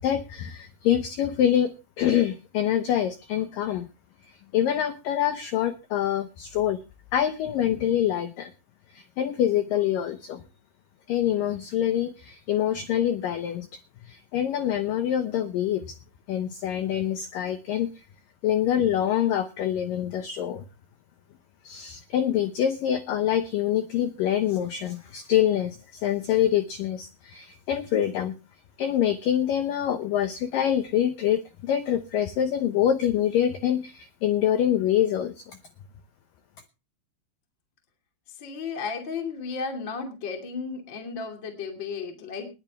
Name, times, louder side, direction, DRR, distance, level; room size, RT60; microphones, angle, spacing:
voice 1, 0.0-3.9 4.3-6.8 7.1-8.5 8.9-10.4 11.1-13.7 14.0-16.0 16.3-18.0 18.4-20.7 21.6-28.4 28.8-35.6, left 10 dB, 80° left, 9 dB, 1.9 m, -25 dB
voice 2, 38.4-42.5, left 5 dB, 30° left, 4 dB, 2.5 m, -34 dB
20.5 x 9.7 x 3.5 m, 0.31 s
omnidirectional pair, 5.3 m